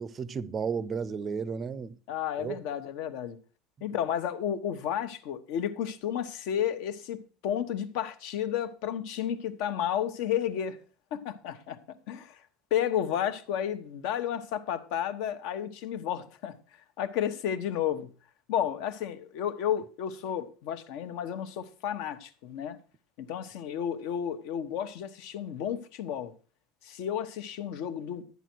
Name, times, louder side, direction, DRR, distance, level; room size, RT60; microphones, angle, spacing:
voice 1, 0.0-2.0 2.4-2.6, right 6 dB, 20° right, 0.5 m, -33 dB
voice 2, 2.1-3.4 3.8-10.8 11.1-12.4 12.7-16.6 17.0-18.1 18.5-22.8 23.2-26.3 26.8-28.2, left 9 dB, 60° left, 1.1 m, -32 dB
12.5 x 9.4 x 4.5 m
cardioid pair, 165°, 0 cm